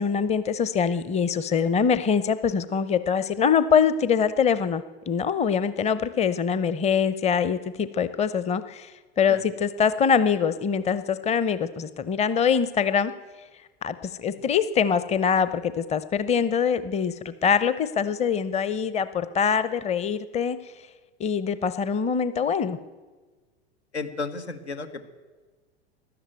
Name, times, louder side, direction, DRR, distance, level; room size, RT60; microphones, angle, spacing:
voice 1, 0.0-8.9 9.2-13.1 13.8-20.6 21.2-22.8, left 6 dB, 20° left, 14 dB, 0.7 m, -24 dB
voice 2, 23.9-25.0, left 3 dB, 90° left, 9 dB, 1.5 m, -33 dB
13.5 x 11.5 x 9.0 m, 1.3 s
hypercardioid pair, 90°, 32 cm